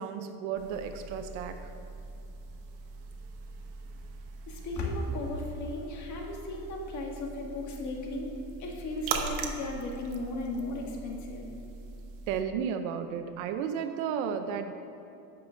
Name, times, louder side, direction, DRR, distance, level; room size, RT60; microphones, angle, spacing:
voice 1, 0.0-1.7 12.3-14.7, right 7 dB, 85° right, 7 dB, 0.7 m, -33 dB
sound 1, 0.5-12.4, right 5 dB, 50° right, 1.1 m, -41 dB
voice 2, 4.5-8.3 8.6-11.5, left 2 dB, 45° left, 0 dB, 1.7 m, -35 dB
9.2 x 6.1 x 6.3 m, 2.9 s
cardioid pair, 140°, 41 cm